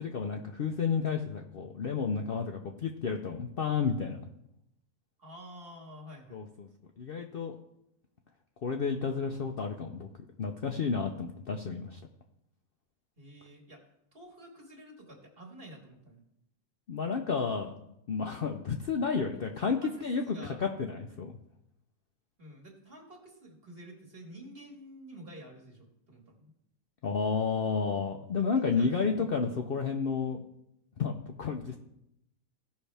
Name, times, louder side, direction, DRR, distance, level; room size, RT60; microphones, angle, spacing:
voice 1, 0.0-4.2 6.3-6.7 7.0-7.6 8.6-10.1 10.4-12.0 16.9-17.7 18.1-21.3 27.0-30.4 31.0-31.8, left 5 dB, 55° left, 3 dB, 0.7 m, -31 dB
voice 2, 5.2-6.4 13.2-13.8 14.1-16.2 19.3-20.6 22.4-26.5 28.4-29.3, equal, 40° right, 0 dB, 1.9 m, -50 dB
16.5 x 5.6 x 3.4 m, 0.81 s
omnidirectional pair, 1.5 m